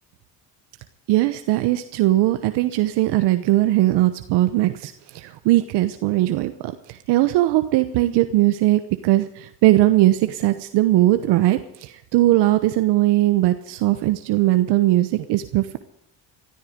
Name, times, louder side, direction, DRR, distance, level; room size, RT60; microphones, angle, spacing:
voice 1, 1.1-15.8, right 16 dB, 85° right, 9 dB, 1.0 m, -19 dB
18.0 x 13.5 x 5.2 m, 0.73 s
cardioid pair, 90°, 40 cm